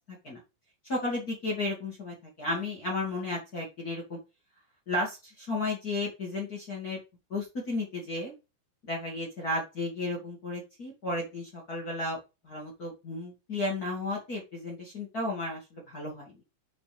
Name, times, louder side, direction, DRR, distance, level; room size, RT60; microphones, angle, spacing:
voice 1, 0.9-4.2 4.9-7.0 7.3-8.3 8.9-12.2 12.4-16.4, left 2 dB, 55° left, -3 dB, 0.9 m, -33 dB
8.7 x 4.4 x 3.5 m, 0.26 s
omnidirectional pair, 5.8 m